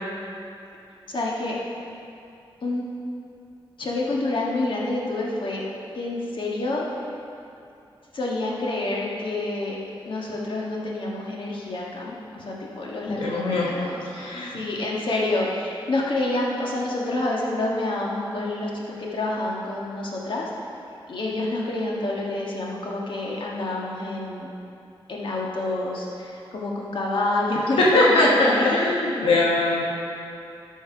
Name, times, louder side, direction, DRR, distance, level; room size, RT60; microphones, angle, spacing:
voice 1, 1.1-1.6 2.6-2.8 3.8-5.6 5.9-6.8 8.1-9.8 10.0-14.0 14.5-20.4 21.1-24.5 25.1-28.7, left 2 dB, 65° left, -3 dB, 1.5 m, -28 dB
voice 2, 13.1-13.7 14.1-14.5 27.8-29.8, left 2 dB, 80° left, -5 dB, 1.3 m, -20 dB
12.5 x 4.6 x 5.7 m, 2.6 s
wide cardioid pair, 105°, 9 cm